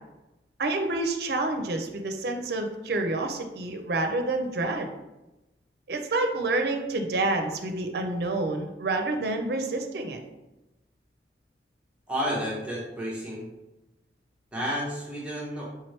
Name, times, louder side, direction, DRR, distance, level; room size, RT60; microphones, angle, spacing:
voice 1, 0.6-4.9 5.9-10.2, right 2 dB, 60° right, 5 dB, 0.5 m, -28 dB
voice 2, 12.1-13.5 14.5-15.6, equal, 5° right, -6 dB, 0.7 m, -31 dB
4.7 x 3.0 x 3.2 m, 0.99 s
head